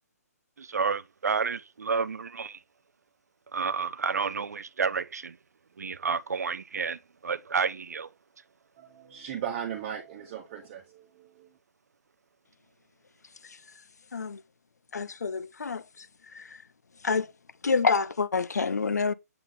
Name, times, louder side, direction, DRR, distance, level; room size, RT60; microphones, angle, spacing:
voice 1, 0.6-2.6 3.5-5.4 5.8-8.1, right 5 dB, 75° right, 0.4 m, -30 dB
voice 2, 8.8-11.6, right 9 dB, 30° right, 1.1 m, -37 dB
voice 3, 14.9-16.1 16.3-16.6 17.0-17.3 17.6-19.1, left 4 dB, 75° left, 0.6 m, -27 dB
7.9 x 3.6 x 3.8 m
figure-of-eight pair, 140°, 9 cm